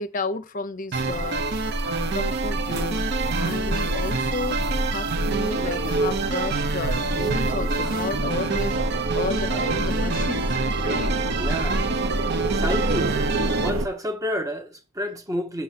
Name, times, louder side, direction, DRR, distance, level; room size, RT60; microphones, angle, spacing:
voice 1, 0.0-1.4 1.8-3.0 3.4-11.1 11.4-11.5, left 3 dB, 40° left, 0.6 m, -32 dB
sound 1, 0.9-13.7, right 4 dB, 50° right, 0.8 m, -28 dB
sound 2, 0.9-13.9, right 1 dB, 80° right, 1.0 m, -27 dB
voice 2, 11.4-11.9 12.6-13.2 13.5-15.6, equal, 15° right, 1.1 m, -29 dB
6.9 x 6.9 x 4.2 m
head